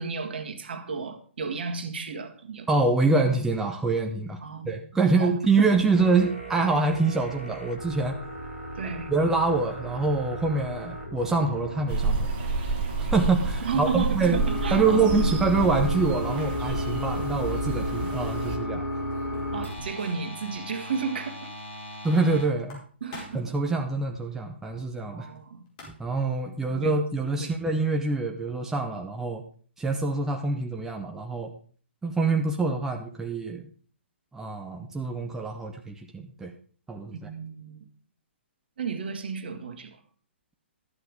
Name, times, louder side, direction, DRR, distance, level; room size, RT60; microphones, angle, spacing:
voice 1, 0.0-2.7 4.4-4.8 5.2-5.3 5.6-5.8 8.8-9.1 13.6-15.3 19.5-21.5 23.0-23.4 25.0-25.6 26.7-27.0 27.4-27.5 37.1-37.9 38.8-40.0, right 5 dB, 55° right, 6 dB, 1.8 m, -33 dB
voice 2, 2.7-4.4 4.6-8.2 9.1-12.3 13.1-14.4 14.7-18.8 22.0-22.8 23.3-25.3 25.9-29.4 29.8-31.5 32.0-33.7 34.3-36.5 36.9-37.3, right 3 dB, 5° right, 2 dB, 0.8 m, -25 dB
sound 1, 5.9-22.4, equal, 85° left, 6.8 m, -35 dB
sound 2, 11.9-18.6, right 3 dB, 25° right, 1.3 m, -30 dB
sound 3, 18.9-20.3 20.6-20.7 21.0-21.1 22.5-23.6 25.4-25.5 25.7-26.2, left 2 dB, 35° left, 4.5 m, -45 dB
12.0 x 8.0 x 5.0 m, 0.43 s
figure-of-eight pair, 130°, 7 cm